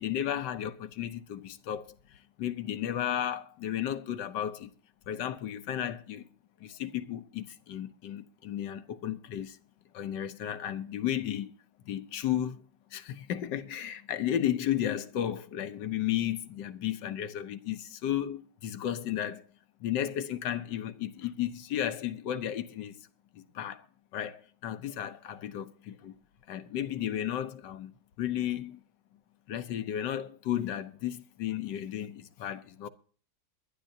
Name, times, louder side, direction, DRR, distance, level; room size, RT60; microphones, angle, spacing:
voice 1, 0.0-4.7 5.1-6.3 6.6-9.6 9.9-11.5 11.8-12.6 12.9-19.4 19.8-23.1 23.3-23.9 24.1-26.1 26.5-27.9 28.2-28.8 29.5-32.9, left 11 dB, 85° left, 1.5 m, -34 dB
22.0 x 11.5 x 2.7 m
omnidirectional pair, 1.9 m